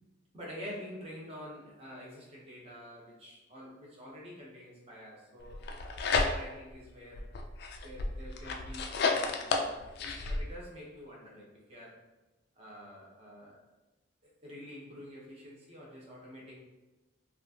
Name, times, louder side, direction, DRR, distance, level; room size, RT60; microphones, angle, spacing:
voice 1, 0.3-5.8 6.2-7.2 7.8-12.0 12.6-13.6 14.2-16.6, equal, 30° right, -4 dB, 0.8 m, -47 dB
sound 1, 5.5-6.7 7.1-10.4, left 4 dB, 55° left, 0.3 m, -32 dB
2.8 x 2.4 x 2.7 m, 1.1 s
head